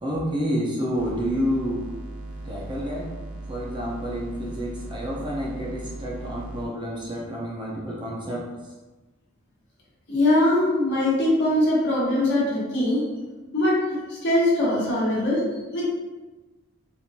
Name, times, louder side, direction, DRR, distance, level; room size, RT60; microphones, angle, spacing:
voice 1, 0.0-1.8 2.4-3.1 3.5-8.5, equal, 20° right, -4 dB, 0.5 m, -29 dB
sound 1, 1.0-6.7, right 2 dB, 80° right, 0.6 m, -38 dB
voice 2, 10.1-13.0 13.5-15.4 15.7-15.8, left 1 dB, 50° left, -6 dB, 1.2 m, -22 dB
4.4 x 2.5 x 2.7 m, 1.2 s
head